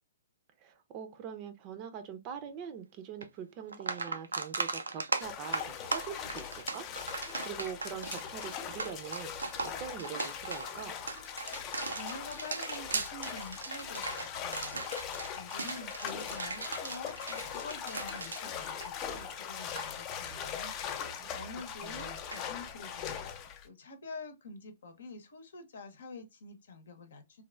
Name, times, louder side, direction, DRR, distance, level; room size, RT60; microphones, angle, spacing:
voice 1, 0.6-10.9 21.2-21.3 21.8-22.2, right 8 dB, 35° right, 0.5 m, -43 dB
sound 1, 3.2-3.3 3.7-19.3 19.6-19.9 22.3-22.4, right 3 dB, 85° right, 0.4 m, -38 dB
sound 2, 5.2-23.7, left 8 dB, 30° left, 0.5 m, -40 dB
voice 2, 11.9-14.8 15.4-27.4, left 3 dB, 70° left, 0.8 m, -47 dB
3.2 x 2.3 x 2.2 m
hypercardioid pair, 125°, 0 cm